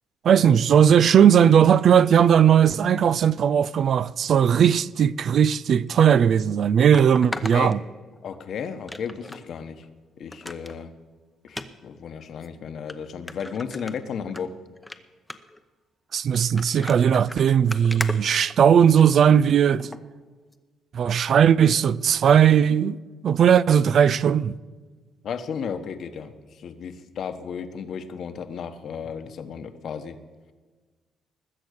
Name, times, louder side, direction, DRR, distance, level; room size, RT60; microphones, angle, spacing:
voice 1, 0.2-7.8 16.1-19.9 20.9-23.0 23.2-24.5, right 8 dB, 55° right, 0.4 m, -18 dB
sound 1, 5.9-6.0 6.9-8.4 8.9-9.4 9.8-9.9 10.3-10.8 11.5-11.7 12.4-12.5 12.9-13.0 13.3-14.4 14.8-15.0 15.3-15.6 16.3-19.0 19.8-20.0 20.5-20.6, left 1 dB, 10° left, 0.8 m, -36 dB
voice 2, 8.2-9.9 10.2-10.9 11.4-14.5 25.2-30.2, left 7 dB, 60° left, 1.1 m, -34 dB
20.0 x 7.9 x 6.5 m
cardioid pair, 115°, 0 cm